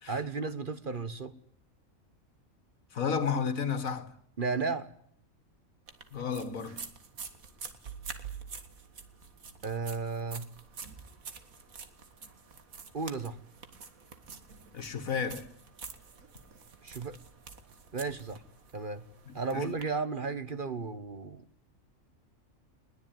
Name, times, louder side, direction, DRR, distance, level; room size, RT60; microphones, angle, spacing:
voice 1, 0.1-1.3 4.4-4.9 9.6-10.5 12.9-13.4 16.8-17.2 17.9-18.4 18.7-19.0 19.3-21.4, right 4 dB, 40° right, 1.2 m, -34 dB
voice 2, 2.9-4.1 6.1-6.8 14.7-15.5 19.5-19.7, left 6 dB, 80° left, 2.1 m, -32 dB
sound 1, 5.9-19.8, right 5 dB, 90° right, 2.2 m, -47 dB
21.0 x 19.5 x 9.2 m
omnidirectional pair, 1.4 m